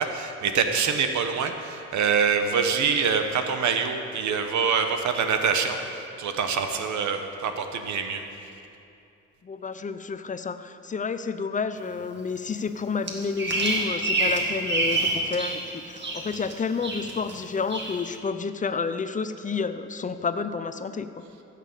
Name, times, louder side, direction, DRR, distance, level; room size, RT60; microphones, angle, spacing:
voice 1, 0.0-8.2, right 6 dB, 70° right, 6 dB, 1.1 m, -25 dB
voice 2, 9.4-21.2, left 5 dB, 25° left, 11 dB, 0.6 m, -30 dB
Bird vocalization bird call bird song, 13.1-15.6 15.9-16.5 16.8-17.3 17.7-18.0, right 2 dB, 35° right, 2.0 m, -26 dB
15.0 x 6.7 x 6.9 m, 2.6 s
cardioid pair, 90°, 30 cm